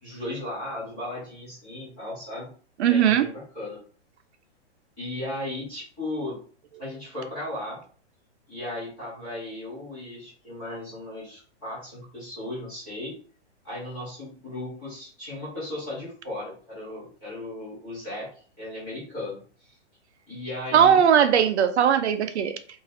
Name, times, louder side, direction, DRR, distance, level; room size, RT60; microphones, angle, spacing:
voice 1, 0.0-2.5 2.8-3.8 5.0-6.4 6.8-7.8 8.5-13.1 13.6-19.7 20.3-21.0, left 1 dB, 5° left, -11 dB, 0.5 m, -36 dB
voice 2, 2.8-3.3 20.7-22.5, right 8 dB, 70° right, 9 dB, 0.5 m, -19 dB
2.6 x 2.4 x 3.2 m, 0.43 s
hypercardioid pair, 180°, 36 cm